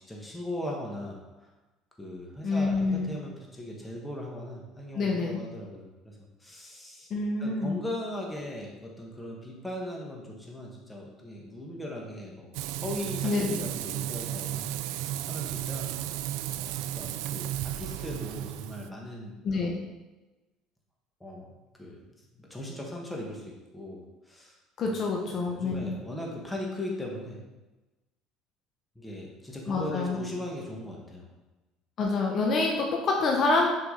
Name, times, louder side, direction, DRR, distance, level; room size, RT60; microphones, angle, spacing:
voice 1, 0.1-1.5 2.0-7.1 7.4-12.5 12.8-15.9 16.6-19.7 21.2-21.9 22.3-24.6 24.8-24.9 25.2-27.4 28.9-31.3, left 1 dB, 10° left, -2 dB, 1.5 m, -39 dB
voice 2, 2.4-3.1 4.9-5.4 7.1-7.8 13.2-13.6 19.4-19.8 24.8-25.9 29.7-30.2 32.0-33.7, left 3 dB, 45° left, 0 dB, 0.9 m, -27 dB
Frying (food), 12.5-18.9, right 12 dB, 80° right, 0.3 m, -34 dB
6.6 x 4.8 x 3.9 m, 1.1 s
cardioid pair, 120°, 0 cm